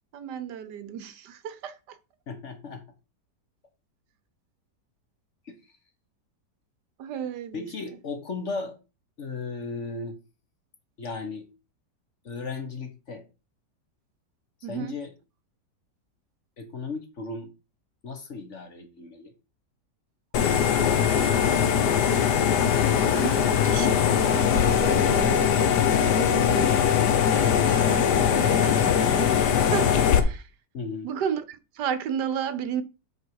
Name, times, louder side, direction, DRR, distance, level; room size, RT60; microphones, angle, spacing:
voice 1, 0.1-2.0 7.0-7.6 14.6-15.0 21.2-21.3 23.1-30.5 31.0-32.8, right 8 dB, 75° right, 1.4 m, -33 dB
voice 2, 2.3-2.8 5.5-5.6 7.5-8.8 9.2-10.2 11.0-11.5 12.2-13.3 14.7-15.1 16.6-17.5 18.0-19.3 30.7-31.1, left 4 dB, 45° left, 1.3 m, -35 dB
sound 1, 20.3-30.2, left 8 dB, 70° left, 1.5 m, -21 dB
7.9 x 5.0 x 4.7 m
omnidirectional pair, 1.9 m